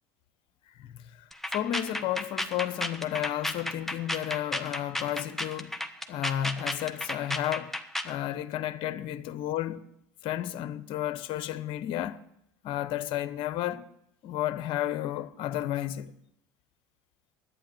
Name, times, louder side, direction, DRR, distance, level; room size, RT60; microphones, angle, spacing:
voice 1, 0.7-5.8 6.1-7.8 8.0-9.9 10.2-12.2 12.6-13.9 14.2-16.1, left 12 dB, 60° left, 0.9 m, -32 dB
sound 1, 1.3-8.2, left 1 dB, 5° left, 1.2 m, -33 dB
11.5 x 9.5 x 7.7 m
hypercardioid pair, 85°, 10 cm